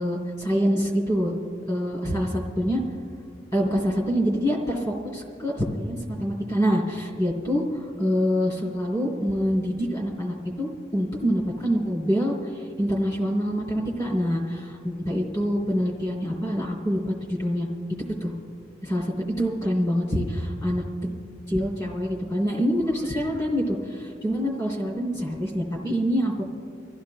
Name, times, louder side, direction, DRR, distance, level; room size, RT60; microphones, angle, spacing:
voice 1, 0.0-1.3 1.7-2.8 3.5-17.7 18.2-18.3 18.8-20.8 21.5-26.4, equal, 30° left, -4 dB, 3.2 m, -26 dB
26.5 x 15.5 x 2.2 m, 2.3 s
head